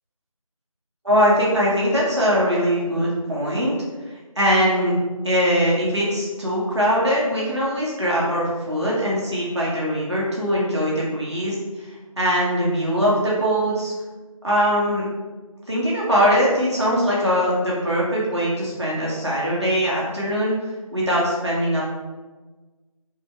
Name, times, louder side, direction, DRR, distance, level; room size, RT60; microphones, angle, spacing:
voice 1, 1.0-3.7 4.3-4.9 5.2-13.9 14.4-15.0 15.7-20.5 20.9-21.8, equal, 50° right, -6 dB, 1.2 m, -21 dB
5.0 x 2.4 x 4.4 m, 1.3 s
figure-of-eight pair, 175°, 18 cm